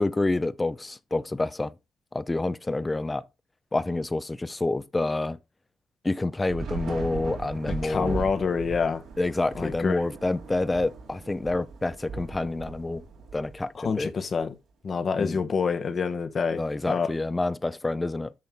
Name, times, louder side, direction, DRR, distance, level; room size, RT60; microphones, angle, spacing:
voice 1, 0.0-1.7 2.1-3.2 3.7-5.4 6.0-8.2 9.2-13.0 13.3-14.1 15.2-15.4 16.5-18.3, left 2 dB, 15° left, 0.5 m, -28 dB
Thunder / Rain, 6.5-14.0, right 4 dB, 70° right, 2.7 m, -38 dB
voice 2, 7.8-9.0 9.5-10.1 13.7-14.5 14.8-16.6 16.9-17.1, left 5 dB, 40° left, 1.1 m, -27 dB
8.7 x 5.9 x 3.6 m
cardioid pair, 115°, 0 cm